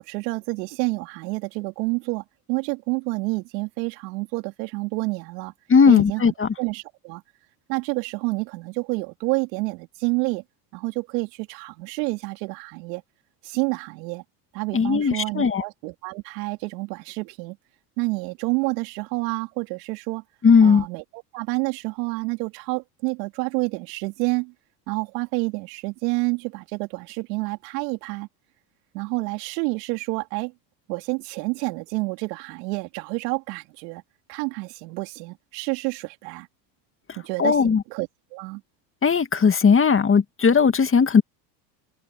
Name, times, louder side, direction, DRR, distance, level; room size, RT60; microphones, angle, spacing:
voice 1, 0.0-5.5 5.9-6.2 6.6-7.2 7.7-10.4 10.7-13.0 13.4-14.2 14.5-17.6 18.0-20.2 20.6-24.5 24.9-28.3 28.9-30.5 30.9-34.0 34.3-36.5 37.2-38.6, right 27 dB, 75° right, 3.6 m, -29 dB
voice 2, 5.7-6.5 14.7-15.6 20.4-20.9 37.4-37.8 39.0-41.2, left 5 dB, 25° left, 2.1 m, -17 dB
supercardioid pair, 95°, 49 cm